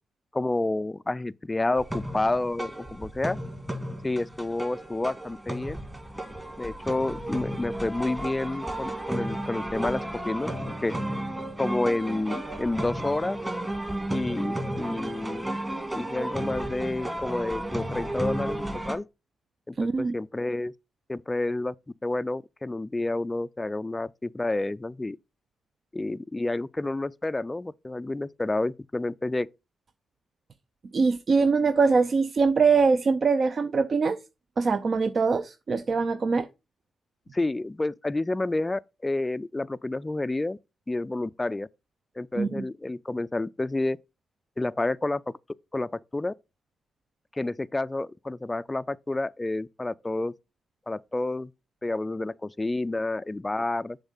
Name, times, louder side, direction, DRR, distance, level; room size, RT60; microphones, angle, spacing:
voice 1, 0.3-3.4 4.0-5.8 6.6-10.5 10.8-10.9 11.6-13.4 14.1-15.5 15.9-19.1 19.7-20.7 21.1-21.7 22.0-25.2 25.9-29.5 37.3-40.6 40.9-41.7 42.2-44.0 44.6-45.3 45.7-46.3 47.3-50.4 50.9-51.5 51.8-54.0, left 2 dB, 20° left, 0.3 m, -29 dB
sound 1, 1.8-19.0, right 1 dB, 15° right, 1.8 m, -33 dB
voice 2, 19.8-20.1 30.9-34.2 34.6-36.5 42.4-42.6, right 4 dB, 50° right, 0.5 m, -23 dB
7.0 x 3.7 x 5.6 m
supercardioid pair, 55°, 0 cm